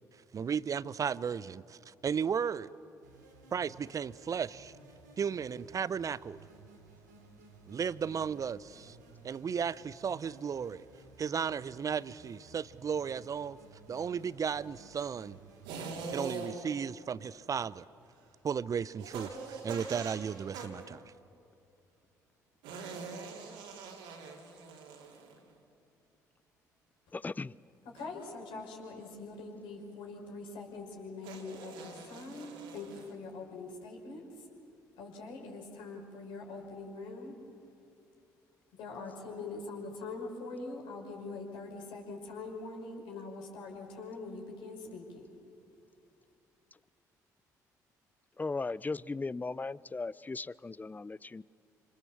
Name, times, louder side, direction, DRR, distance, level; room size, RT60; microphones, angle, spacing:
voice 1, 0.3-2.7 3.5-4.7 5.2-6.4 7.7-9.0 9.2-10.8 11.2-13.6 13.9-15.4 16.1-17.9 18.4-21.1, right 7 dB, 40° right, 19 dB, 0.8 m, -34 dB
sound 1, 3.0-16.0, right 3 dB, 85° right, 2.9 m, -57 dB
sound 2, 15.6-16.8 19.0-20.9 22.6-25.5 27.9-28.3 31.2-33.1, right 4 dB, 70° right, 3.5 m, -43 dB
voice 2, 27.1-27.6 48.4-51.4, left 3 dB, 20° left, 22 dB, 0.6 m, -37 dB
voice 3, 27.8-34.5 35.0-37.4 38.7-45.3, left 3 dB, 65° left, 1 dB, 5.5 m, -43 dB
28.0 x 27.0 x 7.4 m, 2.6 s
figure-of-eight pair, 50°, 9 cm